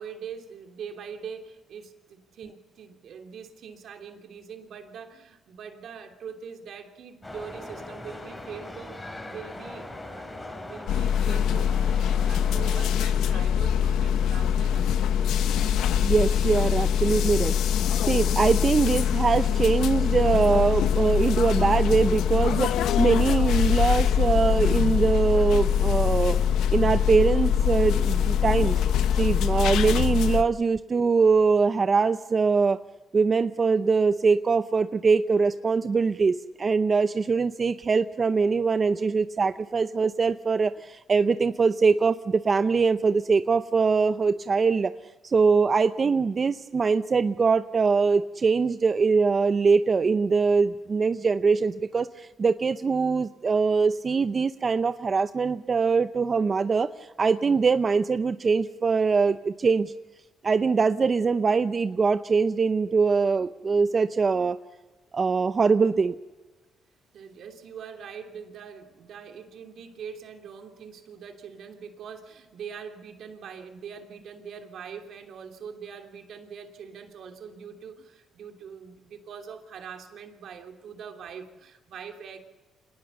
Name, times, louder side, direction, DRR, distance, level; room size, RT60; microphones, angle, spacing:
voice 1, 0.0-15.1 67.1-82.4, right 6 dB, 70° right, 4 dB, 3.0 m, -42 dB
sound 1, 7.2-12.8, left 1 dB, 20° left, 6.4 m, -40 dB
sound 2, 10.9-30.4, left 8 dB, 85° left, 0.9 m, -23 dB
voice 2, 16.0-17.6 18.1-26.4 26.7-28.8 29.1-32.8 33.1-44.9 45.2-59.9 60.4-64.6 65.1-66.1, right 5 dB, 35° right, 11 dB, 0.7 m, -23 dB
26.5 x 19.5 x 7.1 m, 1.2 s
cardioid pair, 90°, 0 cm